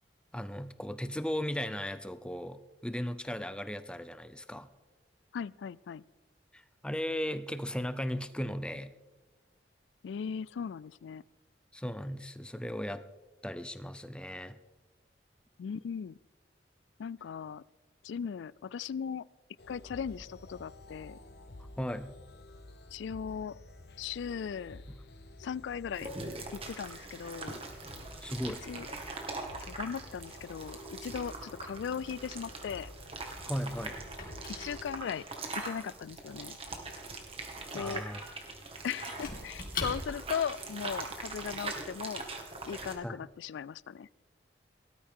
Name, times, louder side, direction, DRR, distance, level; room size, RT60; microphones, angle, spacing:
voice 1, 0.3-4.7 6.5-8.9 11.7-13.0 13.4-14.6 21.8-22.2 24.9-25.0 28.2-28.6 33.4-34.0 37.7-38.2 43.0-43.3, equal, 5° left, 11 dB, 0.6 m, -36 dB
voice 2, 5.3-6.0 10.0-11.2 15.6-16.2 17.0-17.6 18.0-19.3 19.7-21.2 22.9-23.6 24.0-24.8 25.4-26.1 26.5-27.6 28.7-28.9 29.6-32.9 34.5-35.2 35.5-36.6 37.7-38.0 38.8-42.2 42.7-44.1, left 7 dB, 80° left, 22 dB, 0.3 m, -38 dB
sound 1, 19.6-35.0, left 1 dB, 65° left, 0.8 m, -51 dB
sound 2, 25.9-42.9, right 3 dB, 30° right, 1.8 m, -42 dB
Squeak / Wood, 33.3-40.4, left 3 dB, 50° left, 2.7 m, -44 dB
18.0 x 13.5 x 3.7 m, 1.2 s
head